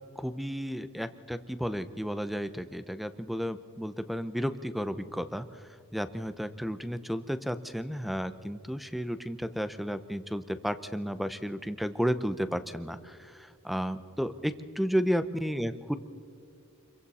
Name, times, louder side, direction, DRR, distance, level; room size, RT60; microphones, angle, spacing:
voice 1, 0.0-16.0, equal, ahead, 12 dB, 0.6 m, -33 dB
28.0 x 23.0 x 4.2 m, 2.5 s
head